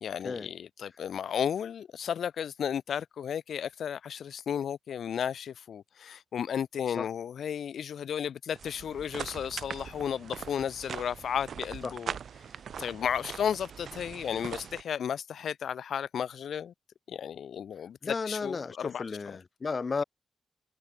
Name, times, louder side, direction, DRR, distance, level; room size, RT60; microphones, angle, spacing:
voice 1, 0.0-12.2 12.8-16.7 17.1-19.0, left 8 dB, 80° left, 0.6 m, -33 dB
sound 1, 8.5-14.8, right 7 dB, 75° right, 1.1 m, -41 dB
voice 2, 18.0-20.0, left 4 dB, 50° left, 1.5 m, -33 dB
supercardioid pair, 50°, 0 cm